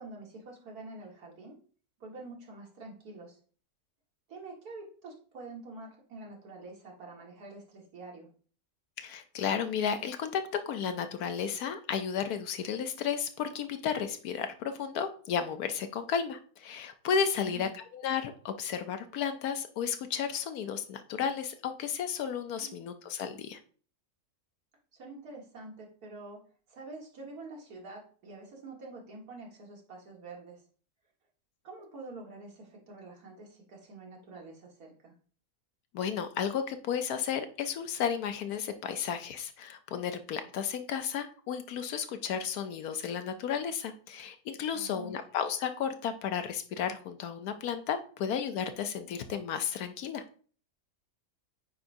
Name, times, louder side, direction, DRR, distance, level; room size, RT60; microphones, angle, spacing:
voice 1, 0.0-1.6 2.0-3.4 4.3-8.3 17.4-17.7 22.6-22.7 24.9-26.4 26.7-30.6 31.6-35.1 44.7-45.1, right 2 dB, 80° right, -1 dB, 2.1 m, -47 dB
voice 2, 9.0-23.6 35.9-50.2, left 7 dB, 80° left, 8 dB, 1.2 m, -33 dB
8.8 x 4.7 x 2.6 m, 0.42 s
omnidirectional pair, 1.6 m